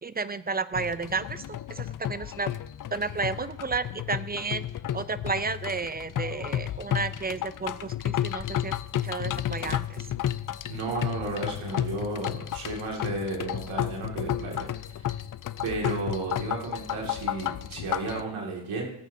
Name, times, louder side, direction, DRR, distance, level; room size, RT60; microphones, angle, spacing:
voice 1, 0.0-1.4 1.7-2.5 2.9-4.6 4.9-8.8 9.0-10.1, right 4 dB, 20° right, 15 dB, 0.4 m, -32 dB
sound 1, 0.7-18.2, left 11 dB, 45° left, 0.5 m, -32 dB
voice 2, 10.7-15.2 15.6-18.9, right 3 dB, 90° right, -1 dB, 2.3 m, -33 dB
18.0 x 8.1 x 2.7 m, 0.81 s
cardioid pair, 65°, 47 cm